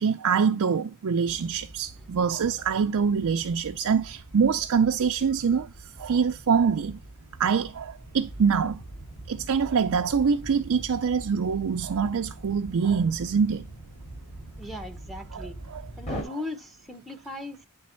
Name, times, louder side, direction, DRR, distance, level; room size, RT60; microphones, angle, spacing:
voice 1, 0.0-7.0 7.4-8.8 9.3-13.7 15.3-15.8, right 6 dB, 70° right, 0.4 m, -25 dB
sound 1, 1.2-16.2, right 1 dB, 30° left, 2.7 m, -43 dB
voice 2, 14.6-15.6 16.0-17.7, left 2 dB, ahead, 0.8 m, -38 dB
9.4 x 3.5 x 4.3 m
head